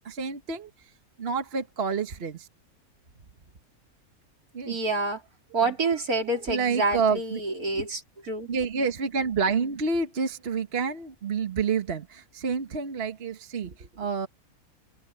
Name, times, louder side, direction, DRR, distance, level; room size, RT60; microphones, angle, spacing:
voice 1, 0.0-0.7 1.2-2.5 4.5-4.8 6.5-7.4 8.5-14.3, right 5 dB, 45° right, 1.4 m, -28 dB
voice 2, 4.7-5.2 5.5-8.5, right 3 dB, 75° right, 4.1 m, -28 dB
omnidirectional pair, 1.6 m